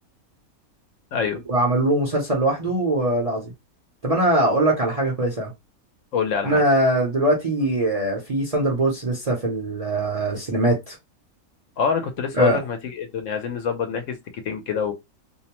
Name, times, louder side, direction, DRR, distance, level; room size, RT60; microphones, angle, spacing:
voice 1, 1.5-3.5 4.0-5.5 6.4-11.0 12.4-12.6, right 1 dB, 35° right, 0.6 m, -21 dB
voice 2, 6.1-6.6 11.8-14.9, left 6 dB, 70° left, 0.9 m, -26 dB
2.6 x 2.0 x 2.9 m
omnidirectional pair, 1.5 m